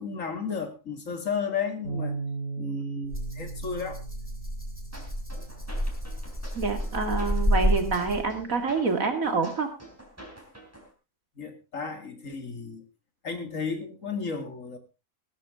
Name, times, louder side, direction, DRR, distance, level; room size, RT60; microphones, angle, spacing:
voice 1, 0.0-2.1 2.6-4.0 11.4-12.8 13.2-14.8, left 5 dB, 70° left, 7 dB, 2.7 m, -33 dB
Bass guitar, 1.8-6.3 6.9-8.1, right 4 dB, 85° left, 7.8 m, -38 dB
Rattle (instrument), 3.1-8.4, equal, 10° left, 2.6 m, -30 dB
sound 1, 4.9-10.9, right 1 dB, 10° right, 3.8 m, -48 dB
voice 2, 6.5-9.7, right 4 dB, 75° right, 6 dB, 2.8 m, -27 dB
16.5 x 13.0 x 3.8 m, 0.29 s
omnidirectional pair, 1.4 m